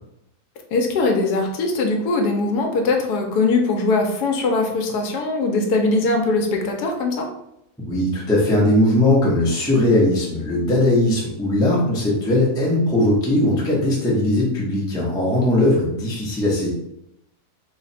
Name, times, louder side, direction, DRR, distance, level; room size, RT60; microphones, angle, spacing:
voice 1, 0.7-7.3, left 3 dB, 80° left, 3 dB, 1.2 m, -21 dB
voice 2, 7.8-16.7, left 1 dB, 5° left, -5 dB, 0.4 m, -19 dB
3.2 x 2.1 x 4.0 m, 0.80 s
omnidirectional pair, 1.7 m